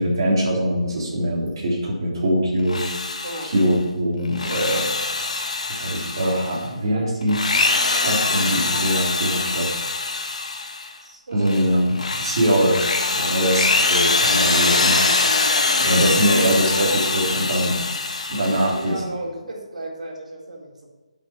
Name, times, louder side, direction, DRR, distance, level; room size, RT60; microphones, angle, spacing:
voice 1, 0.0-5.0 5.7-7.4 7.8-9.7 11.3-12.8 13.2-15.0 15.4-17.7 18.3-18.9, equal, 40° right, -5 dB, 3.6 m, -22 dB
Drill, 2.6-3.7 4.3-6.6 7.2-10.9 11.4-18.9, left 3 dB, 70° left, 1.7 m, -23 dB
voice 2, 11.0-11.6 13.1-13.4 18.3-20.9, right 2 dB, 85° right, -2 dB, 4.0 m, -34 dB
11.0 x 7.9 x 4.6 m, 1.2 s
hypercardioid pair, 175°, 4 cm